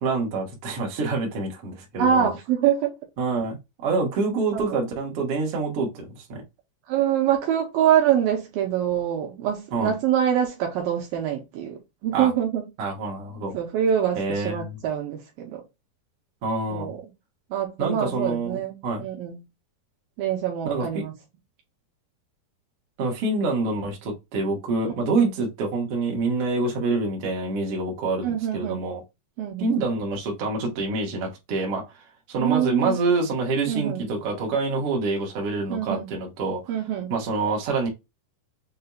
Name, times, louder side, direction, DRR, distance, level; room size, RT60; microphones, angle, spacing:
voice 1, 0.0-2.3 3.2-6.4 9.7-9.9 12.1-12.3 12.8-13.6 14.1-14.8 16.4-16.9 17.8-19.0 20.6-20.9 23.0-29.0 29.6-36.8 37.1-37.9, right 3 dB, 55° right, 1.6 m, -26 dB
voice 2, 2.0-2.9 4.5-4.6 6.9-12.6 13.5-15.6 16.7-17.0 17.5-19.4 20.2-21.1 28.2-28.9 29.4-29.7 32.4-33.0 33.7-34.0 35.7-36.1 36.7-37.1, right 9 dB, 75° right, 2.3 m, -25 dB
6.6 x 2.7 x 2.4 m
omnidirectional pair, 4.5 m